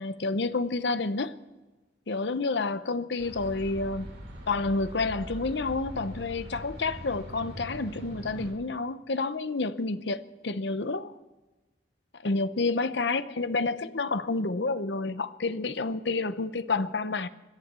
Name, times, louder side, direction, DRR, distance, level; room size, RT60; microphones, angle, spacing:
voice 1, 0.0-1.4 2.1-4.1 4.5-11.1 12.2-17.3, left 3 dB, 70° left, 0.8 m, -29 dB
sound 1, 3.2-8.5, equal, 70° right, 4.5 m, -42 dB
17.5 x 11.5 x 6.8 m
head